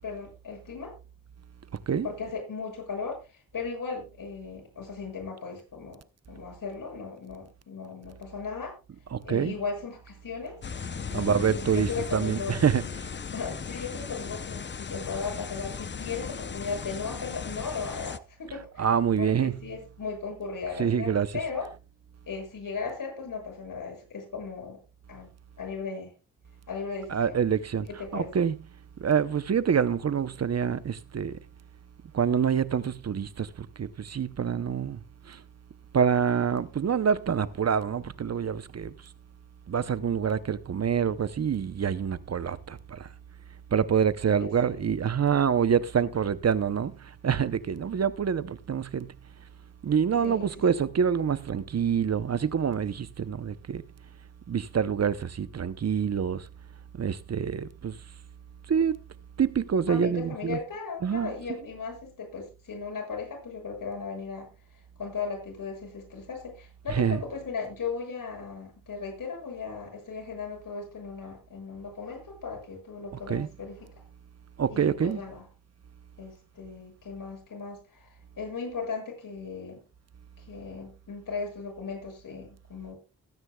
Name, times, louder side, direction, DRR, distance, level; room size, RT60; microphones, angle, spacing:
voice 1, 0.0-0.9 2.0-6.0 6.3-8.7 9.2-10.6 10.8-12.5 13.3-18.9 19.2-21.7 22.3-24.8 25.1-25.3 25.6-26.1 26.7-27.4 28.0-28.3 44.2-44.7 50.2-50.5 59.9-64.5 65.0-73.9 74.7-75.4 76.2-79.8 80.4-83.0, left 5 dB, 70° left, 7.3 m, -37 dB
voice 2, 9.1-9.6 11.1-12.8 18.8-19.6 20.8-21.3 27.1-27.9 28.1-28.6 29.0-31.4 32.1-35.0 35.3-35.4 35.9-38.9 39.7-43.1 43.7-49.2 49.8-53.8 54.5-56.5 57.0-58.0 58.7-59.0 59.4-60.6 61.0-61.3 66.9-67.2 73.3-73.5 74.6-75.2, right 7 dB, 50° right, 0.8 m, -26 dB
sound 1, 10.6-18.2, left 6 dB, 35° left, 0.7 m, -37 dB
20.5 x 9.7 x 2.3 m
cardioid pair, 75°, 34 cm